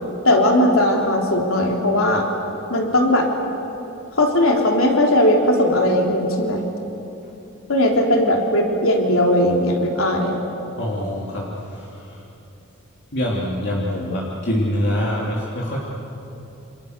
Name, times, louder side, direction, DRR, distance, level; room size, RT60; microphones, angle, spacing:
voice 1, 0.2-2.2 2.7-3.3 4.2-6.6 7.7-10.4, left 1 dB, 75° left, 0 dB, 3.4 m, -18 dB
voice 2, 10.8-12.2 13.1-15.8, equal, 50° left, -4 dB, 3.2 m, -25 dB
29.5 x 28.5 x 6.8 m, 2.9 s
head